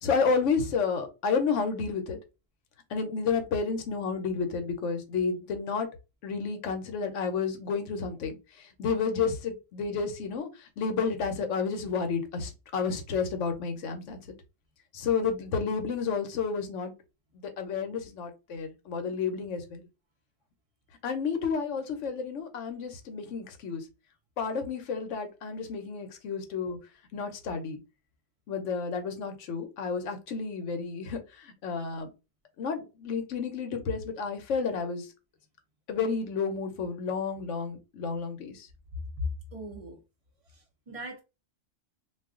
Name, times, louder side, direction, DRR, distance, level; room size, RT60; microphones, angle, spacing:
voice 1, 0.0-2.2 2.9-5.9 6.2-8.4 8.8-10.5 10.8-14.2 14.9-16.9 17.6-19.8 21.0-23.8 24.4-26.8 27.1-27.8 28.5-32.1 32.6-35.1 35.9-38.7, left 5 dB, 70° left, 1.0 m, -31 dB
voice 2, 39.5-40.0 40.5-41.2, right 2 dB, 40° right, 0.5 m, -42 dB
2.4 x 2.3 x 3.5 m
omnidirectional pair, 1.4 m